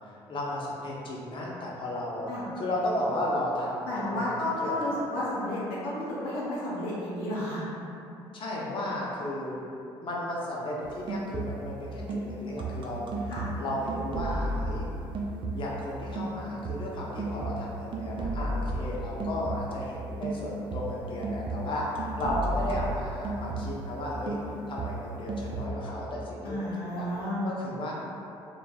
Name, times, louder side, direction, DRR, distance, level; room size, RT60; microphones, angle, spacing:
voice 1, 0.0-3.9 4.1-4.3 4.6-4.9 8.3-9.6 10.0-13.3 13.6-14.9 15.5-24.4 24.7-26.6 27.0-27.1 27.4-27.9, left 1 dB, 45° left, -4 dB, 0.6 m, -34 dB
voice 2, 3.8-7.7 13.3-13.5 26.4-27.4, left 1 dB, 90° left, -8 dB, 0.6 m, -32 dB
sound 1, 10.8-11.8 12.1-15.9 16.2-19.9 20.2-23.9 24.3-25.7, right 2 dB, 45° right, 0.4 m, -34 dB
2.2 x 2.0 x 3.3 m, 2.7 s
hypercardioid pair, 65°, 12 cm